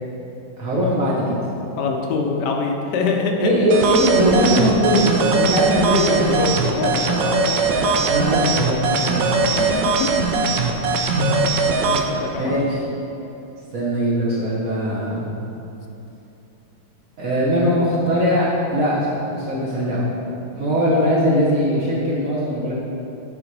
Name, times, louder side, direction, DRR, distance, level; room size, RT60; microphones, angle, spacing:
voice 1, 0.6-1.4 3.4-6.3 7.7-9.2 11.1-11.4 11.9-12.8 13.7-15.3 17.2-19.1 19.3-20.1 20.5-22.7, equal, 55° right, -7 dB, 1.2 m, -20 dB
voice 2, 1.8-3.7 6.1-7.8 9.4-10.3 10.6-11.0 11.7-12.5, left 4 dB, 70° left, 2 dB, 1.2 m, -25 dB
sound 1, 3.7-12.0, right 4 dB, 75° right, 1.2 m, -20 dB
7.7 x 4.1 x 4.6 m, 2.9 s
omnidirectional pair, 2.1 m